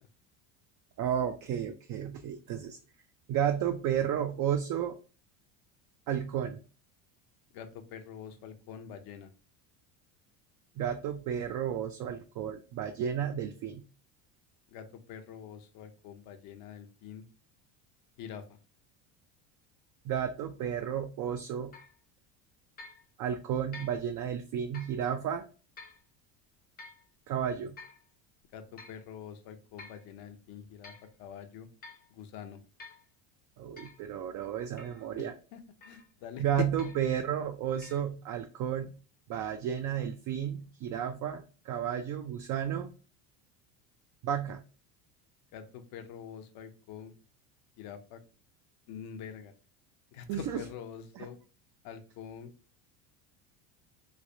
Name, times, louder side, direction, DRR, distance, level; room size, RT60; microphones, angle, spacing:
voice 1, 1.0-2.8 3.3-5.0 6.1-6.6 10.8-13.8 20.0-21.7 23.2-25.4 27.3-27.8 33.6-35.3 36.4-38.9 39.3-42.9 44.2-44.6 50.3-50.6 51.2-51.3, right 9 dB, 45° right, 5 dB, 0.4 m, -32 dB
voice 2, 7.5-9.3 14.7-17.2 18.2-18.4 28.5-30.9 31.2-31.7 32.1-32.6 35.5-36.7 45.5-47.1 47.8-48.2 48.9-49.5 50.1-51.4 51.8-52.5, left 8 dB, 55° left, 7 dB, 0.7 m, -44 dB
sound 1, 21.7-22.0 22.8-23.0 23.7-24.0 24.7-25.0 25.8-26.0 26.8-27.0 27.8-28.0 28.8-29.0 29.8-30.0 30.6-31.1 31.8-32.1 32.8-33.1 33.8-34.0 34.8-35.0 35.8-36.1 36.8-37.1 37.8-38.0, left 3 dB, 20° left, 0.6 m, -50 dB
3.3 x 3.1 x 2.6 m, 0.36 s
supercardioid pair, 115°, 42 cm